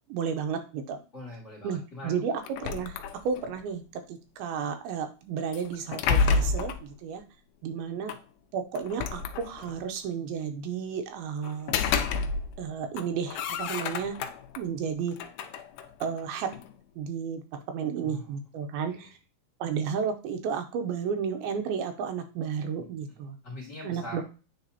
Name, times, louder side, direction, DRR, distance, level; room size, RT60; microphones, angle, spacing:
voice 1, 0.1-1.0 1.6-3.0 3.2-7.2 7.6-8.1 8.5-11.8 12.6-14.2 14.6-15.2 16.0-16.5 17.0-19.1 19.6-23.4 23.8-24.2, right 6 dB, 85° right, 6 dB, 2.6 m, -32 dB
voice 2, 1.1-2.1 18.0-18.4 18.9-19.1 22.8-22.9 23.4-24.2, left 1 dB, 25° left, -4 dB, 1.8 m, -42 dB
sound 1, 2.4-3.6 5.5-6.9 8.1-8.2 8.8-9.8 11.4-12.7 12.9-14.6 15.1-16.7, left 5 dB, 90° left, 1.8 m, -29 dB
9.1 x 4.0 x 2.7 m, 0.33 s
omnidirectional pair, 4.4 m